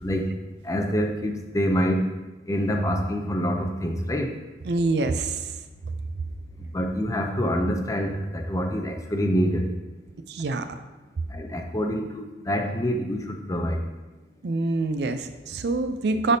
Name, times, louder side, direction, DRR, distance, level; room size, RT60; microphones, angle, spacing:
voice 1, 0.0-0.3 0.6-2.1 2.5-4.3 6.7-9.7 11.3-13.8, equal, 20° left, 4 dB, 0.5 m, -26 dB
voice 2, 4.6-5.5 10.3-10.8 14.4-16.4, right 3 dB, 65° right, 9 dB, 0.4 m, -25 dB
10.0 x 3.5 x 2.7 m, 1.1 s
head